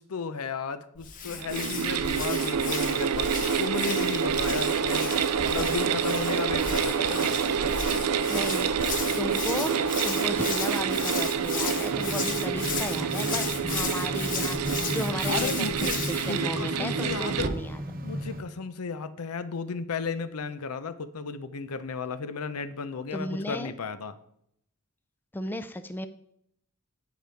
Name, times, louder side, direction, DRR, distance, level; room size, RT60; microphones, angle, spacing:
voice 1, 0.0-3.3 3.6-5.1 5.4-7.4 15.3-17.5 18.0-24.2, left 5 dB, 80° left, 12 dB, 0.6 m, -34 dB
Hands, 1.0-16.4, left 6 dB, 40° left, 0.8 m, -35 dB
sound 1, 1.2-17.5, right 7 dB, 85° right, 0.5 m, -28 dB
voice 2, 8.3-17.8 23.1-23.7 25.3-26.1, left 1 dB, 10° left, 10 dB, 0.3 m, -35 dB
sound 2, 11.9-18.4, equal, 40° right, 0.9 m, -35 dB
9.2 x 5.0 x 4.5 m, 0.73 s
head